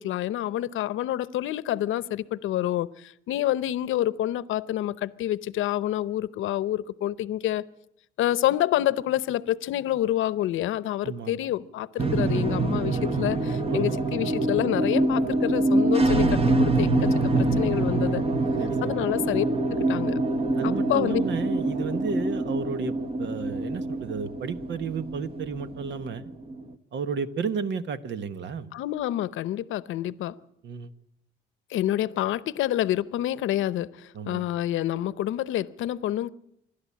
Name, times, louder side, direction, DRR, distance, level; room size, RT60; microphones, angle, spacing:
voice 1, 0.0-7.6 8.2-17.1 17.4-18.2 18.8-19.4 19.7-20.2 20.6-21.2 28.7-30.4 31.7-36.3, left 13 dB, 80° left, 17 dB, 0.8 m, -28 dB
voice 2, 11.0-11.4 13.7-14.0 18.6-18.8 20.6-26.3 26.9-28.7 30.6-30.9 34.1-34.4, right 5 dB, 65° right, 12 dB, 1.3 m, -32 dB
sound 1, 12.0-26.6, right 2 dB, 30° right, 1.3 m, -25 dB
27.0 x 12.0 x 8.5 m, 0.77 s
cardioid pair, 90°, 20 cm